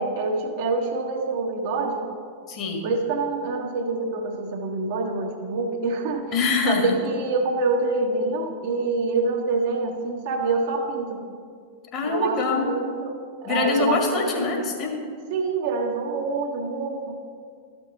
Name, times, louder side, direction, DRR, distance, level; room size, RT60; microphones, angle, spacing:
voice 1, 0.0-2.0 2.8-6.3 6.7-11.2 12.0-13.1 13.4-14.4 15.3-17.1, right 3 dB, 50° right, 2 dB, 1.1 m, -26 dB
voice 2, 2.5-2.9 6.3-6.9 11.9-12.7 13.4-15.1, left 4 dB, 35° left, 2 dB, 1.6 m, -24 dB
13.0 x 6.0 x 4.0 m, 2.1 s
figure-of-eight pair, 90°, 0 cm